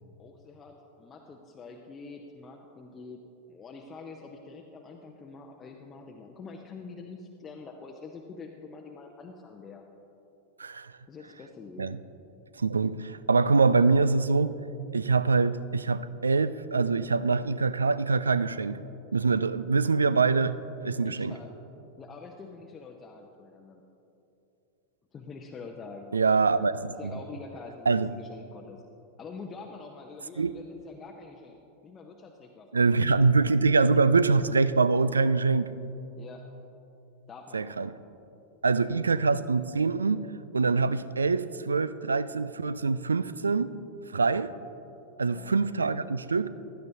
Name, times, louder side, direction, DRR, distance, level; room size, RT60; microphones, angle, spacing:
voice 1, 0.2-3.2 3.5-9.8 11.1-12.0 21.0-21.5 22.0-23.8 25.1-26.2 26.6-26.7 27.0-28.9 29.2-31.6 31.8-33.2 36.2-36.4 37.3-38.0 38.7-39.2 45.2-45.6, left 4 dB, 20° left, 2 dB, 0.6 m, -46 dB
voice 2, 10.6-10.9 11.8-12.0 12.6-14.5 14.9-18.8 19.1-20.5 20.8-21.4 26.1-26.7 27.0-27.1 27.9-28.1 30.4-30.5 32.7-35.7 37.5-38.0 38.6-40.3 40.5-43.7 44.1-44.5 45.2-46.5, right 4 dB, 75° right, 16 dB, 0.3 m, -24 dB
15.5 x 11.5 x 2.7 m, 3.0 s
figure-of-eight pair, 90°, 0 cm